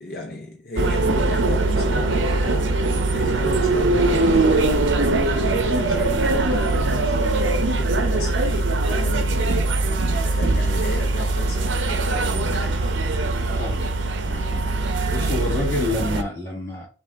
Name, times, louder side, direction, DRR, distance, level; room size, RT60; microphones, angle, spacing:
voice 1, 0.0-2.9 3.1-9.5 10.1-13.0 14.2-14.7 15.1-15.7, left 2 dB, 50° left, 0.7 m, -35 dB
sound 1, 0.8-16.2, right 2 dB, 80° right, 0.6 m, -21 dB
voice 2, 13.6-13.9 14.5-14.8 15.1-16.9, left 2 dB, 15° left, 1.7 m, -27 dB
5.7 x 2.4 x 3.4 m
head